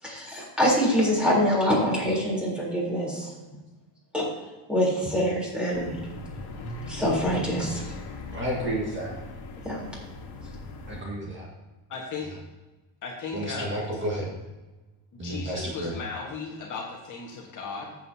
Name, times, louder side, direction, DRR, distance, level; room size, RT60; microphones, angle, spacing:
voice 1, 0.0-3.3 4.1-4.3 4.7-5.9 6.9-7.9 9.6-9.8, equal, ahead, -5 dB, 3.7 m, -25 dB
sound 1, 5.7-11.0, left 2 dB, 55° left, 2.0 m, -39 dB
voice 2, 8.3-9.2 10.9-11.4 13.3-14.3 15.2-15.9, equal, 25° right, -3 dB, 1.8 m, -31 dB
voice 3, 11.9-12.3 13.0-13.8 15.1-18.0, left 4 dB, 40° left, -1 dB, 1.6 m, -36 dB
14.0 x 7.8 x 2.8 m, 1.2 s
cardioid pair, 145°, 49 cm